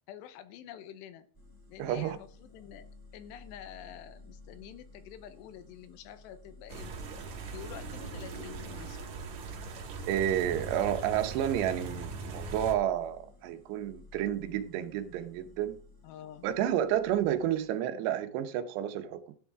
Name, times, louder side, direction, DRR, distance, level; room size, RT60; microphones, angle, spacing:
voice 1, 0.1-1.3 1.7-6.9 7.5-9.0 16.0-16.5, left 10 dB, 85° left, 3.0 m, -48 dB
sound 1, 1.3-17.8, left 3 dB, 5° left, 3.1 m, -55 dB
voice 2, 1.8-2.2 10.1-15.8 16.4-19.3, right 11 dB, 80° right, 3.0 m, -30 dB
sound 2, 6.7-12.8, right 4 dB, 55° right, 2.5 m, -40 dB
12.5 x 9.9 x 3.6 m
omnidirectional pair, 4.9 m